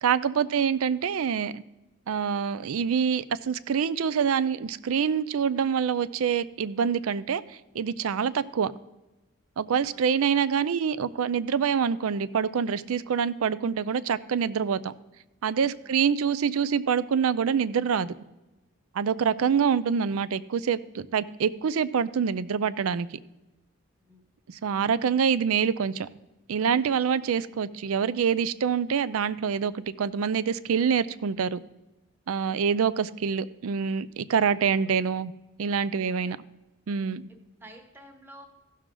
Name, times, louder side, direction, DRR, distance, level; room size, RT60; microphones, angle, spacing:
voice 1, 0.0-1.6 2.1-8.7 9.6-14.9 15.4-18.1 18.9-23.2 24.5-26.1 26.5-31.6 32.3-35.3 35.6-36.4 36.9-37.3, right 7 dB, 80° right, 17 dB, 0.4 m, -26 dB
voice 2, 37.3-38.5, equal, 10° right, 3 dB, 1.0 m, -51 dB
15.5 x 6.4 x 3.8 m, 1.0 s
head